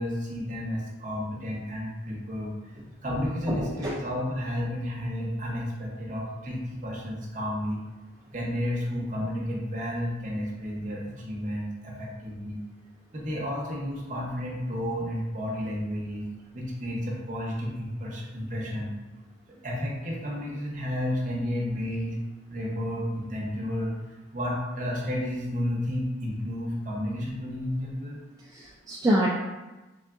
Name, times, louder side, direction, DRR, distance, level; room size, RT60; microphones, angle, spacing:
voice 1, 0.0-2.8 3.0-7.8 8.3-12.6 13.1-16.3 16.5-18.9 19.6-22.2 22.5-24.0 24.3-28.2, left 1 dB, 40° right, -2 dB, 0.7 m, -31 dB
voice 2, 3.5-3.9 28.5-29.3, equal, 20° right, -5 dB, 0.3 m, -26 dB
3.7 x 3.4 x 2.4 m, 1.1 s
head